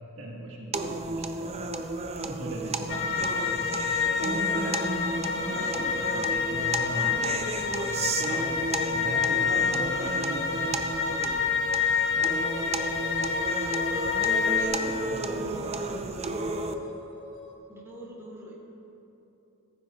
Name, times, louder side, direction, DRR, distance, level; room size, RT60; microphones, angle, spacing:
voice 1, 0.2-1.7 2.2-7.5 7.8-10.7 14.7-16.3, right 1 dB, 65° right, -3 dB, 1.5 m, -39 dB
sound 1, 0.7-16.7, right 3 dB, 30° right, 0.5 m, -33 dB
sound 2, 2.9-14.7, left 6 dB, 55° left, 1.2 m, -28 dB
sound 3, 3.6-17.6, equal, 35° left, 1.8 m, -46 dB
voice 2, 9.2-9.8 10.5-10.7 12.6-12.8 14.4-15.6 17.7-18.5, right 1 dB, 15° right, -5 dB, 2.5 m, -42 dB
15.0 x 15.0 x 2.4 m, 3.0 s
head